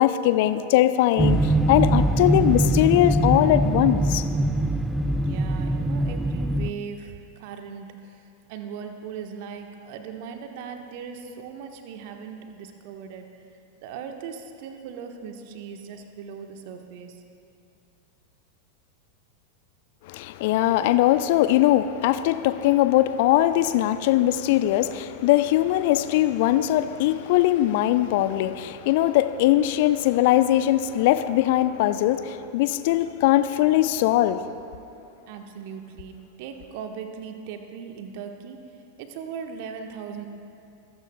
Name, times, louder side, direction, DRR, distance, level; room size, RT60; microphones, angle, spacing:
voice 1, 0.0-4.2 20.1-34.4, left 14 dB, 50° left, 12 dB, 0.5 m, -21 dB
sound 1, 1.2-6.7, right 1 dB, 5° right, 0.4 m, -22 dB
voice 2, 5.2-13.5 13.8-17.2 35.3-38.6 39.0-40.3, right 7 dB, 50° right, 5 dB, 1.2 m, -38 dB
22.5 x 15.0 x 2.3 m, 2.6 s
figure-of-eight pair, 90°, 0 cm